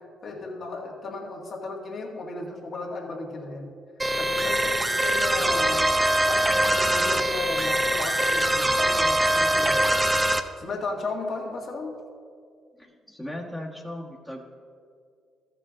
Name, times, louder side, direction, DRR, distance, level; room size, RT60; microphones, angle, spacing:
voice 1, 0.0-3.8 4.1-6.0 6.3-9.9 10.6-12.0, left 3 dB, 60° left, -1 dB, 1.9 m, -35 dB
sound 1, 4.0-10.4, right 1 dB, 20° right, 0.6 m, -23 dB
voice 2, 12.8-14.4, left 1 dB, 5° left, -2 dB, 1.3 m, -37 dB
13.5 x 6.9 x 3.8 m, 2.2 s
supercardioid pair, 60°, 0 cm